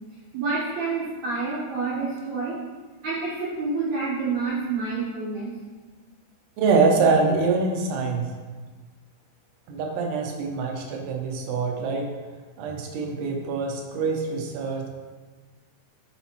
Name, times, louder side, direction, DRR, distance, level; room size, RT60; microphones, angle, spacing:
voice 1, 0.3-2.6 3.0-5.5, right 4 dB, 65° right, -8 dB, 1.8 m, -28 dB
voice 2, 6.6-8.3 9.7-12.1 12.6-14.9, right 4 dB, 85° right, 1 dB, 3.0 m, -24 dB
11.5 x 4.1 x 2.9 m, 1.4 s
omnidirectional pair, 4.7 m